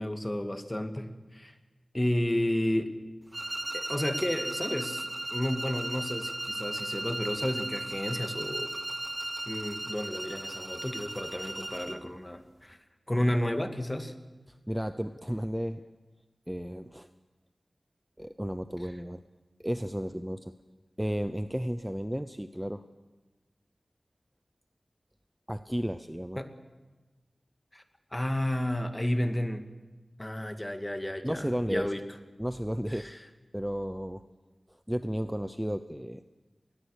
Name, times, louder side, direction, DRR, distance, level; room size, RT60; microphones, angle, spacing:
voice 1, 0.0-1.5 1.9-2.9 3.7-5.0 5.3-8.8 9.5-12.8 13.1-14.1 26.4-26.5 27.7-27.8 28.1-29.6 30.2-32.0 32.9-33.2, left 1 dB, 20° left, 7 dB, 1.8 m, -32 dB
sound 1, 3.3-12.1, right 1 dB, 35° right, 1.1 m, -36 dB
voice 2, 14.7-15.8 16.5-17.1 18.2-19.2 19.6-20.5 21.0-22.9 25.5-26.4 31.2-31.9 32.4-33.1 33.5-34.2 34.7-36.2, equal, 5° right, 11 dB, 0.7 m, -33 dB
20.5 x 20.0 x 6.5 m, 1.2 s
wide cardioid pair, 55°, 0 cm